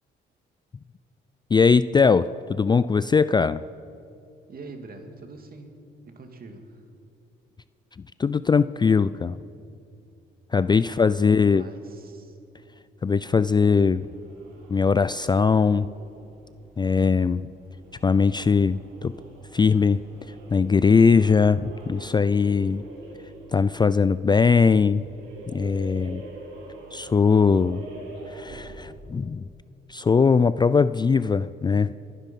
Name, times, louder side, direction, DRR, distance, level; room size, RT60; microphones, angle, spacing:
voice 1, 1.5-3.6 8.2-9.4 10.5-11.6 13.0-14.1 14.7-15.9 16.8-17.5 18.0-19.1 19.5-20.0 20.5-22.8 23.5-25.1 25.5-26.2 26.9-27.8 28.3-29.4 29.9-31.9, left 5 dB, 20° left, 15 dB, 0.3 m, -20 dB
voice 2, 4.5-6.9 11.2-12.4, right 3 dB, 50° right, 5 dB, 2.3 m, -44 dB
sound 1, 13.4-29.1, right 2 dB, 85° right, 3.1 m, -44 dB
25.0 x 10.0 x 5.4 m, 2.6 s
cardioid pair, 90°, 20 cm